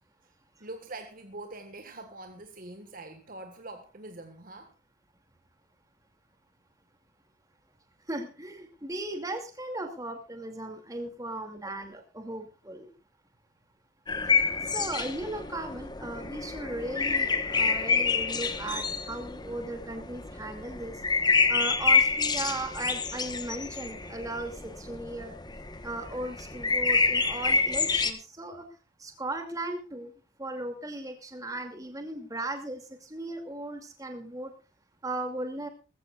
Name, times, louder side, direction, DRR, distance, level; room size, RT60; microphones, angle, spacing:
voice 1, 0.6-4.7, right 2 dB, 40° right, 1.6 m, -44 dB
voice 2, 8.1-12.9 14.6-21.0 21.5-25.3 25.8-28.7 29.0-30.1 30.4-34.5 35.0-35.7, right 2 dB, 15° right, 2.5 m, -37 dB
sound 1, 14.1-28.1, left 4 dB, 20° left, 1.1 m, -28 dB
20.5 x 15.0 x 2.4 m
head